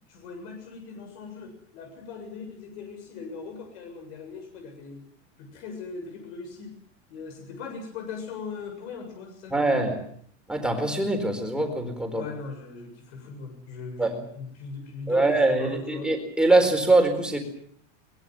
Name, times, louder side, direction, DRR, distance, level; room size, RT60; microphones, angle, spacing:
voice 1, 0.1-5.0 5.4-6.7 7.1-9.9 12.1-16.1, left 5 dB, 60° left, 4 dB, 7.3 m, -39 dB
voice 2, 9.5-10.0 10.5-12.3 14.0-14.1 15.1-17.4, right 2 dB, ahead, 4 dB, 4.4 m, -23 dB
23.0 x 21.0 x 7.8 m, 0.64 s
supercardioid pair, 160°, 38 cm